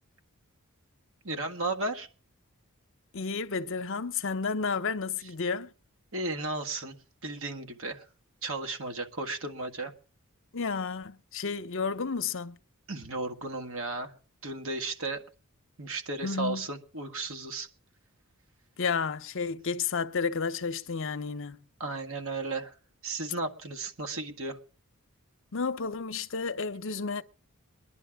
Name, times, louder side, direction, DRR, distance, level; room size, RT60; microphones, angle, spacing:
voice 1, 1.2-2.1 6.1-7.0 7.2-8.1 8.4-9.9 12.9-14.1 14.4-15.2 15.8-17.7 21.8-22.8 23.0-24.6, right 2 dB, 65° right, 1.7 m, -34 dB
voice 2, 3.1-5.7 10.5-12.6 16.2-16.7 18.8-21.6 25.5-27.2, left 5 dB, 60° left, 0.8 m, -31 dB
22.0 x 11.0 x 3.6 m
head